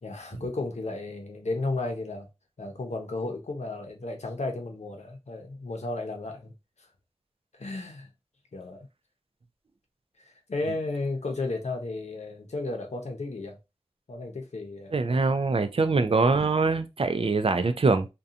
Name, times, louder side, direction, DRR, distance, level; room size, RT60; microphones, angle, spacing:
voice 1, 0.0-2.3 2.6-6.5 7.5-8.1 8.5-8.9 10.2-13.6 14.1-15.2, left 2 dB, 90° left, 0.6 m, -34 dB
voice 2, 14.9-18.1, right 3 dB, 55° right, 0.4 m, -23 dB
2.7 x 2.2 x 2.4 m
wide cardioid pair, 45°, 11 cm